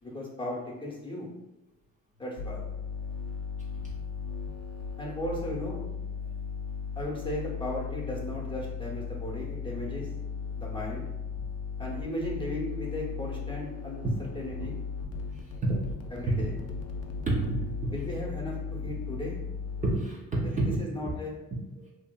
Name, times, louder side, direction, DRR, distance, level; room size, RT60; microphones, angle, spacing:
voice 1, 0.0-1.3 2.2-2.6 5.0-5.9 7.0-10.1 10.6-11.1 11.8-14.1 14.3-14.8 16.1-16.5 17.9-19.4 20.5-21.4, left 1 dB, 15° left, -4 dB, 0.8 m, -36 dB
sound 1, 2.4-20.0, left 5 dB, 55° left, 0.4 m, -36 dB
voice 2, 17.3-17.9 19.8-20.8 21.8-21.9, right 2 dB, 25° right, -5 dB, 0.5 m, -28 dB
2.7 x 2.4 x 2.2 m, 0.96 s
cardioid pair, 90°, 30 cm